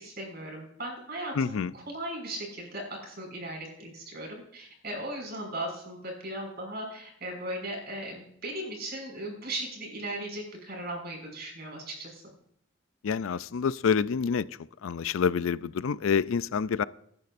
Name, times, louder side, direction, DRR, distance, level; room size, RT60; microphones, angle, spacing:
voice 1, 0.0-12.2, right 1 dB, 50° right, 0 dB, 6.1 m, -37 dB
voice 2, 1.4-1.7 13.0-14.5 14.8-16.8, left 6 dB, 80° left, 17 dB, 0.4 m, -27 dB
26.0 x 11.0 x 2.6 m, 0.71 s
head